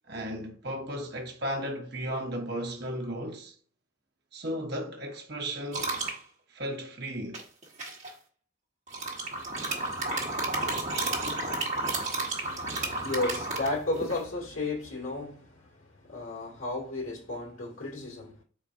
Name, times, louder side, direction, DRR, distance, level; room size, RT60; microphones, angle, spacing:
voice 1, 0.1-3.5 4.3-5.9 6.5-7.4, equal, 50° right, 1.0 m, -35 dB
sound 1, 5.7-6.2 7.3-8.1 8.9-14.2, right 2 dB, 35° right, 1.3 m, -32 dB
voice 2, 12.4-18.4, left 2 dB, 75° left, 2.1 m, -34 dB
4.3 x 3.9 x 2.6 m
head